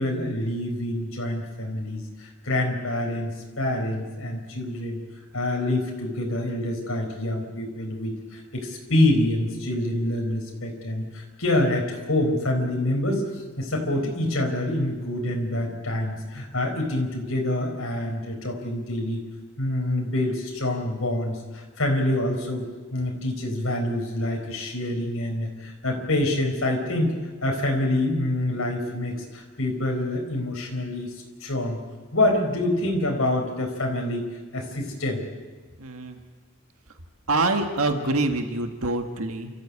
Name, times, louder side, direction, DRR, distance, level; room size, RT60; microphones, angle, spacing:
voice 1, 0.0-5.0 5.3-13.2 13.6-19.2 19.6-22.6 22.9-27.1 27.4-31.1 31.4-31.8 32.1-34.2 34.5-35.2, left 1 dB, 70° left, 1 dB, 4.6 m, -26 dB
voice 2, 35.8-36.2 37.3-39.5, right 2 dB, 85° right, 5 dB, 1.6 m, -25 dB
29.0 x 14.5 x 8.6 m, 1.4 s
head